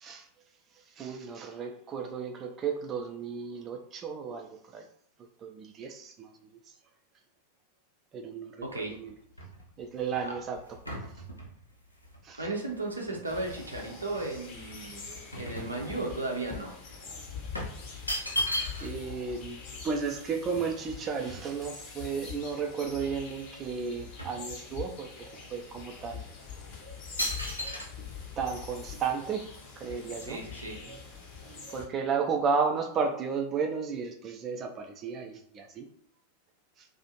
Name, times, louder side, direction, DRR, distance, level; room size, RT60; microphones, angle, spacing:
voice 1, 1.0-4.9 5.4-6.5 8.1-9.1 9.8-10.8 12.2-12.5 18.8-25.1 25.5-26.2 28.4-29.5 29.8-30.5 30.9-31.0 31.7-35.9, right 5 dB, 30° right, 3 dB, 0.4 m, -33 dB
sound 1, 8.6-13.7 14.2-16.3 16.6-16.8 17.5-19.1 19.4-19.5 19.7-21.9 22.4-22.5 22.8-23.6 23.8-25.1 25.6-25.8 26.4-26.7 27.2-27.9, equal, 85° left, 0.5 m, -37 dB
voice 2, 8.6-8.9 10.2-10.3 12.4-15.0 15.4-16.7 30.3-30.8, right 2 dB, 80° right, 0 dB, 0.6 m, -35 dB
sound 2, 13.2-31.9, left 6 dB, 40° left, 0.6 m, -44 dB
2.4 x 2.0 x 2.8 m, 0.65 s
figure-of-eight pair, 90°, 0 cm